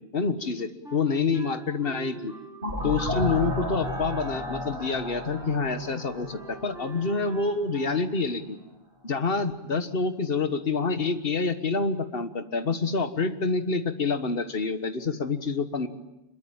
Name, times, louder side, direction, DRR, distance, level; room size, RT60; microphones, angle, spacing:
voice 1, 0.1-2.3 2.8-8.6 9.0-15.9, left 4 dB, 65° left, 9 dB, 1.7 m, -27 dB
Wind instrument woodwind instrument, 0.8-5.1 5.3-5.5 5.8-8.1, right 2 dB, 5° right, 5.7 m, -46 dB
sound 1, 2.6-7.3, left 1 dB, 65° right, 7.0 m, -33 dB
26.0 x 22.5 x 8.9 m, 0.89 s
omnidirectional pair, 1.0 m